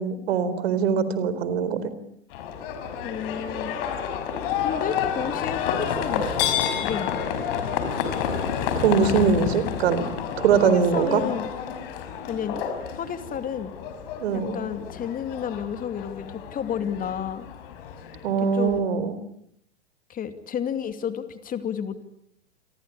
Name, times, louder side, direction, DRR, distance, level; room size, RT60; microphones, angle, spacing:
voice 1, 0.0-1.9 8.8-10.0 10.4-11.2 14.2-14.6 18.2-19.1, right 6 dB, 65° right, 14 dB, 4.0 m, -22 dB
Livestock farm animals working animals, 2.3-18.8, left 8 dB, 55° left, 5.5 m, -30 dB
voice 2, 3.0-3.8 4.6-7.2 10.6-11.5 12.3-12.6 12.9-13.7 14.3-17.5 18.4-18.8 20.1-22.0, left 8 dB, 25° left, 9 dB, 2.5 m, -31 dB
29.0 x 23.0 x 8.5 m, 0.76 s
hypercardioid pair, 105°, 34 cm